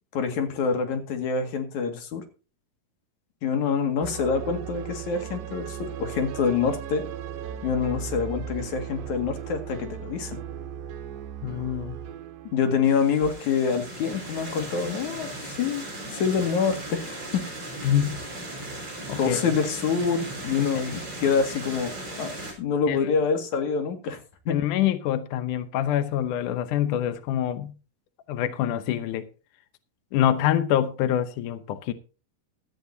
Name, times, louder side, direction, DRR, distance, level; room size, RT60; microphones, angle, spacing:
voice 1, 0.1-2.2 3.4-7.0 7.6-10.4 12.5-17.4 19.2-22.3 22.6-24.2 24.5-24.6, left 6 dB, 50° left, 3.0 m, -26 dB
sound 1, 4.0-13.3, right 9 dB, 80° right, 3.4 m, -37 dB
voice 2, 11.4-12.0 17.8-18.2 19.1-19.6 20.6-20.7 22.9-23.1 24.5-27.7 28.3-29.3 30.1-31.9, left 11 dB, 85° left, 1.8 m, -25 dB
sound 2, 12.8-22.5, right 1 dB, 25° right, 6.8 m, -37 dB
16.5 x 13.0 x 2.8 m
omnidirectional pair, 4.9 m